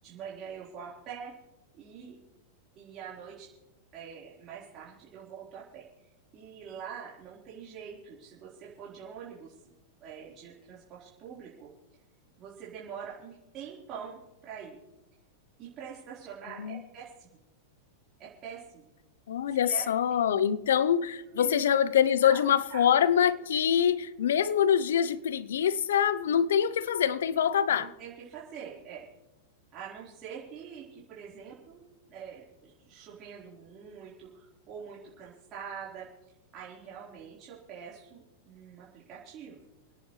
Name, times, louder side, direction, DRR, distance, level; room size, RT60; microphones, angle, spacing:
voice 1, 0.0-1.3 1.7-2.2 2.8-3.5 3.9-9.5 10.0-11.7 12.4-14.8 15.6-17.4 18.2-18.8 19.5-19.8 21.3-21.6 22.2-22.4 22.7-22.8 27.7-29.1 29.7-31.8 32.1-36.1 36.5-39.6, right 7 dB, 40° right, 4.1 m, -44 dB
voice 2, 19.3-27.9, left 9 dB, 80° left, 0.7 m, -25 dB
29.5 x 10.0 x 3.2 m
hypercardioid pair, 115°, 0 cm